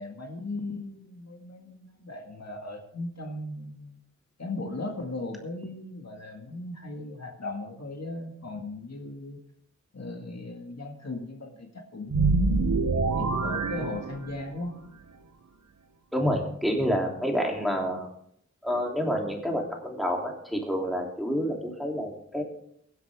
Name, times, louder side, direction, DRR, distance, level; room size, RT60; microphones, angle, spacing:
voice 1, 0.0-4.0 4.4-9.4 9.9-14.8, left 2 dB, 60° left, 1 dB, 2.0 m, -37 dB
sound 1, 12.1-14.6, right 4 dB, 85° right, 0.9 m, -26 dB
voice 2, 16.1-18.1 18.6-22.4, equal, ahead, 0 dB, 3.1 m, -28 dB
23.5 x 8.1 x 3.6 m, 0.68 s
wide cardioid pair, 70°, 29 cm